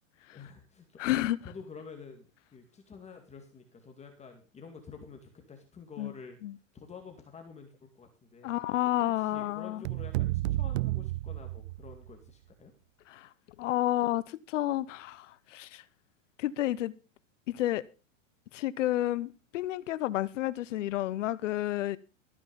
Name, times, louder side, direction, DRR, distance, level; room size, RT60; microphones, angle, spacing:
voice 1, 0.3-1.1 1.4-6.4 6.7-8.6 9.1-12.7, left 5 dB, 15° left, 2.2 m, -49 dB
voice 2, 1.0-1.4 6.0-6.1 6.4-6.6 8.4-9.8 13.1-13.3 13.6-15.8 16.4-16.9 17.5-17.8 18.5-22.0, left 14 dB, 70° left, 0.9 m, -30 dB
sound 1, 9.8-12.1, right 17 dB, 60° right, 0.6 m, -31 dB
14.0 x 9.6 x 5.2 m
hypercardioid pair, 130°, 39 cm